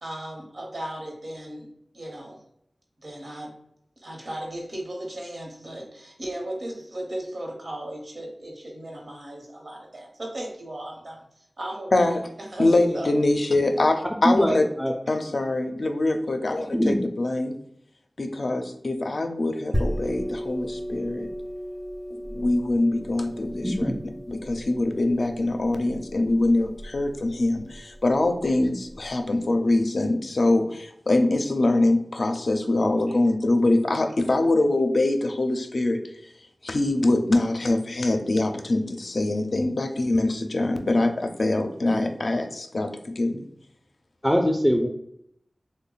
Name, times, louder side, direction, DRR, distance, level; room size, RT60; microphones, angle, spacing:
voice 1, 0.0-1.7 1.9-2.4 3.0-3.6 4.0-12.1 12.4-13.1 15.1-15.2 33.1-33.2, right 1 dB, 70° right, 0 dB, 0.9 m, -36 dB
voice 2, 12.6-14.7 15.1-17.6 18.2-21.3 22.1-23.9 24.3-36.0 36.6-43.4, left 2 dB, 70° left, 6 dB, 0.4 m, -24 dB
voice 3, 14.1-14.9 16.7-17.1 23.6-24.0 44.2-44.9, equal, 10° left, 1 dB, 0.4 m, -22 dB
sound 1, 19.7-29.1, equal, 40° right, 0.6 m, -35 dB
3.1 x 2.1 x 3.8 m, 0.74 s
wide cardioid pair, 50°, 0 cm